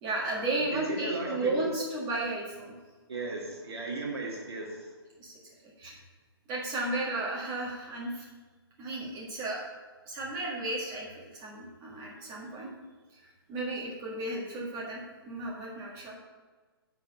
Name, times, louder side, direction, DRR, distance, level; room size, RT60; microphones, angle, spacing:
voice 1, 0.0-2.7 5.2-5.4 5.8-6.0 6.5-8.2 8.8-9.7 10.1-12.7 13.1-16.1, right 2 dB, 20° right, -4 dB, 1.6 m, -34 dB
voice 2, 0.7-1.5 3.1-4.9, right 3 dB, 80° right, -1 dB, 1.7 m, -36 dB
7.3 x 4.2 x 6.6 m, 1.3 s
hypercardioid pair, 170°, 13 cm